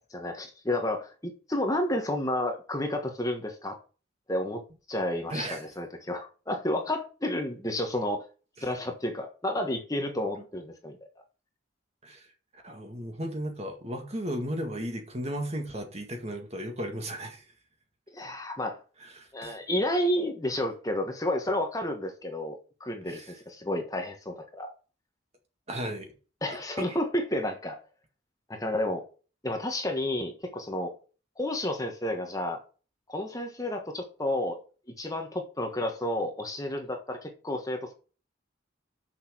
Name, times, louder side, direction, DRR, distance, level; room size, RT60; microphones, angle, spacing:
voice 1, 0.1-3.8 4.3-4.6 4.9-8.3 8.6-11.0 18.1-18.8 19.3-24.7 26.4-27.8 28.5-29.0 29.4-30.9 31.4-32.6 33.1-34.6 35.0-37.9, left 1 dB, 15° left, 1.3 m, -31 dB
voice 2, 5.3-5.7 8.6-8.7 10.4-10.5 12.0-12.3 12.6-17.4 19.0-19.6 23.1-23.3 25.7-26.1 26.8-27.0, equal, 30° right, 1.9 m, -35 dB
6.6 x 6.4 x 6.2 m
head